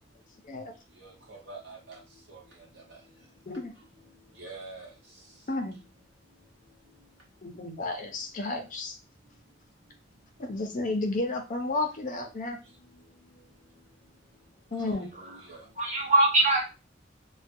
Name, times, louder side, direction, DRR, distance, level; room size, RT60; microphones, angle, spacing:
voice 1, 1.0-2.0 2.3-2.4 2.9-3.0 4.4-4.9 14.8-15.6, right 3 dB, 60° right, -3 dB, 1.1 m, -45 dB
voice 2, 7.4-9.0 10.4-12.6 14.7-15.1, left 2 dB, 45° left, 4 dB, 0.5 m, -32 dB
voice 3, 15.5-16.6, right 2 dB, 40° right, 0 dB, 0.8 m, -23 dB
2.3 x 2.1 x 2.5 m, 0.28 s
head